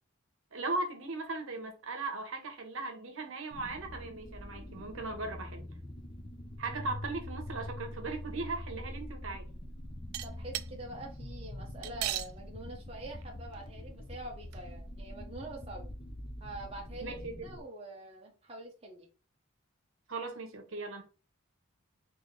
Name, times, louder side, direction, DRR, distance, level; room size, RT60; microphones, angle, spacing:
voice 1, 0.5-5.7 6.6-9.5 17.0-17.4 20.1-21.0, right 3 dB, 70° right, 0.8 m, -38 dB
sound 1, 3.5-17.6, left 1 dB, 20° left, 0.4 m, -44 dB
sound 2, 10.1-10.7 11.8-12.3 13.2-13.3 13.5-13.6 14.5-14.6, right 15 dB, 90° right, 0.3 m, -34 dB
voice 2, 10.2-15.9 16.4-17.1 17.4-19.1, right 1 dB, 25° right, 0.6 m, -45 dB
3.1 x 2.5 x 3.7 m
head